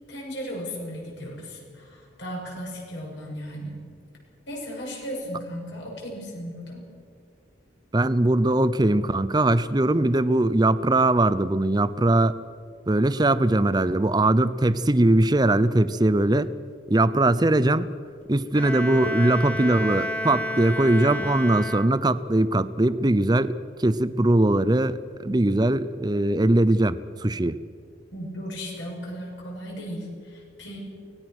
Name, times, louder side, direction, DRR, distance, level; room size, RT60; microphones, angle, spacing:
voice 1, 0.1-3.8 4.5-6.9 28.1-30.8, equal, 75° left, -1 dB, 7.0 m, -36 dB
voice 2, 7.9-12.3 12.9-16.5 16.9-17.9 18.3-27.6, right 1 dB, 20° right, 14 dB, 0.6 m, -21 dB
Bowed string instrument, 18.5-22.3, equal, 5° left, 1.0 m, -31 dB
24.5 x 18.5 x 6.3 m, 2.2 s
head